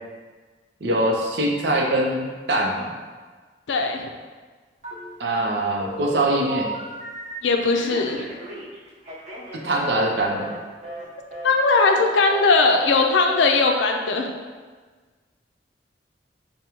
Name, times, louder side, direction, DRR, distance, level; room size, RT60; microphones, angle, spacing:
voice 1, 0.8-3.0 5.2-6.7 9.5-10.5, right 1 dB, 65° right, 0 dB, 0.6 m, -23 dB
voice 2, 3.7-4.1 7.4-8.2 11.4-14.3, left 3 dB, 90° left, 3 dB, 0.4 m, -19 dB
Telephone, 4.8-5.4 5.8-7.4 7.8-10.6 10.8-11.1 11.3-11.5 11.8-12.0 12.3-12.5 12.7-13.0 13.2-13.4, right 1 dB, 40° right, 0.9 m, -36 dB
4.9 x 2.2 x 2.9 m, 1.4 s
head